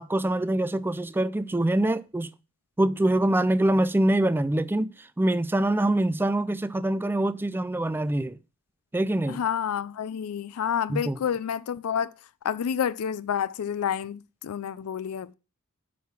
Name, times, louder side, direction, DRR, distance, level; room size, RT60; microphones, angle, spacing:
voice 1, 0.0-2.3 2.8-4.9 5.2-8.4 8.9-9.4 10.9-11.2, right 1 dB, 10° right, 0.3 m, -24 dB
voice 2, 9.3-12.1 12.4-15.3, left 8 dB, 85° left, 0.4 m, -29 dB
7.5 x 5.7 x 5.8 m
head